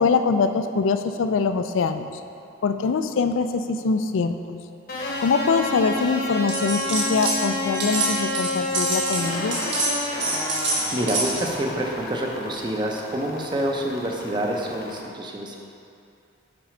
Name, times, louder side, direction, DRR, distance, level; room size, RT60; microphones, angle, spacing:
voice 1, 0.0-2.1 2.6-4.6 5.2-9.6, left 4 dB, 80° left, 8 dB, 0.4 m, -23 dB
sound 1, 4.9-15.0, left 1 dB, 50° left, 0.9 m, -30 dB
sound 2, 6.5-7.4 7.6-11.5, right 2 dB, 65° right, 1.3 m, -26 dB
voice 2, 10.9-15.6, right 1 dB, 25° right, 0 dB, 0.6 m, -27 dB
6.0 x 4.3 x 4.9 m, 2.6 s
head